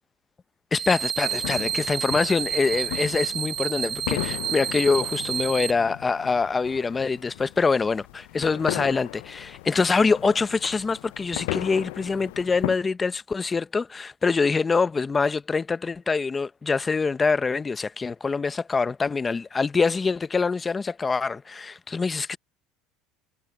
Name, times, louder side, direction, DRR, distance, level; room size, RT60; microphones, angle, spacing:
voice 1, 0.7-22.4, left 4 dB, 20° left, 0.7 m, -25 dB
sound 1, 0.7-5.7, right 9 dB, 40° right, 0.5 m, -30 dB
sound 2, 1.2-12.7, left 23 dB, 85° left, 0.3 m, -37 dB
supercardioid pair, 125°, 0 cm